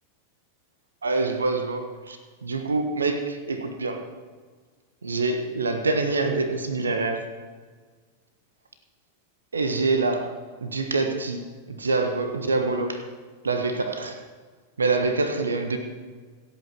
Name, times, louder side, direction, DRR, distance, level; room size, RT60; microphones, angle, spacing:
voice 1, 1.0-4.0 5.0-7.2 9.5-10.3 10.6-13.0 13.4-14.2 14.8-15.8, right 3 dB, 75° right, 7 dB, 1.3 m, -26 dB
26.0 x 8.7 x 4.6 m, 1.5 s
figure-of-eight pair, 90°, 0 cm